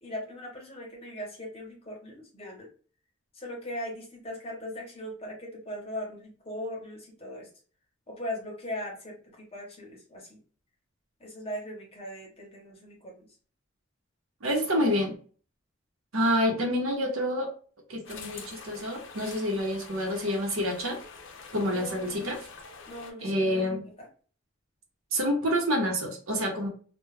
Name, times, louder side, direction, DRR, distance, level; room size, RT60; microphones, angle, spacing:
voice 1, 0.0-2.7 3.3-7.5 8.1-10.4 11.2-13.3 21.7-22.4 22.9-23.6 24.0-24.1, left 1 dB, 30° left, -1 dB, 0.9 m, -39 dB
voice 2, 14.4-15.2 16.1-17.5 17.9-21.0 21.5-22.4 23.2-23.9 25.1-26.7, equal, 85° right, 2 dB, 0.8 m, -28 dB
sound 1, 18.0-23.1, left 5 dB, 65° left, 0.5 m, -46 dB
2.3 x 2.2 x 3.1 m, 0.41 s
head